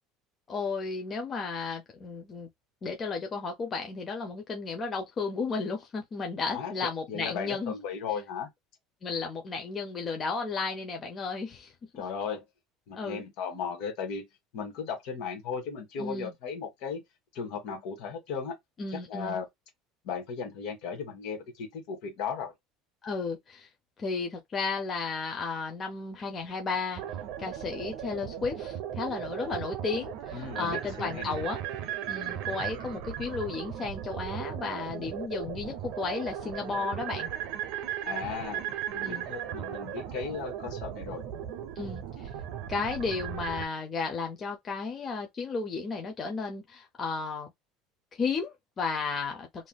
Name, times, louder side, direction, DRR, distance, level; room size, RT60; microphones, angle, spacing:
voice 1, 0.5-2.5 2.8-7.7 9.0-11.7 12.9-13.2 16.0-16.3 18.8-19.4 23.0-23.7 24.0-27.0 27.4-31.6 32.1-37.3 39.0-39.3 41.8-42.3 42.7-47.5 48.2-49.7, left 4 dB, 25° left, 0.5 m, -33 dB
voice 2, 6.4-6.7 7.1-8.5 11.9-12.4 12.9-14.3 14.5-17.0 17.3-18.6 18.9-19.5 20.0-22.5 30.3-31.4 38.0-38.7 38.9-41.2, left 6 dB, 60° left, 1.5 m, -36 dB
sound 1, 27.0-43.7, right 10 dB, 65° right, 0.6 m, -37 dB
3.5 x 2.5 x 2.2 m
cardioid pair, 160°, 0 cm